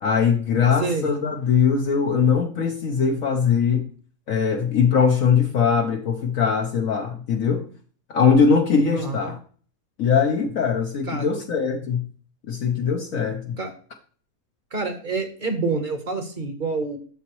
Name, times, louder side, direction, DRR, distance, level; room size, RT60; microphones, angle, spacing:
voice 1, 0.0-3.9 4.3-7.7 8.1-9.4 10.0-12.0 12.5-13.6, left 6 dB, 60° left, 3 dB, 1.1 m, -21 dB
voice 2, 0.8-1.1 8.9-9.3 11.0-11.3 13.6-13.7 14.7-17.0, right 4 dB, 35° right, 6 dB, 1.1 m, -27 dB
7.0 x 6.9 x 3.0 m, 0.43 s
omnidirectional pair, 1.7 m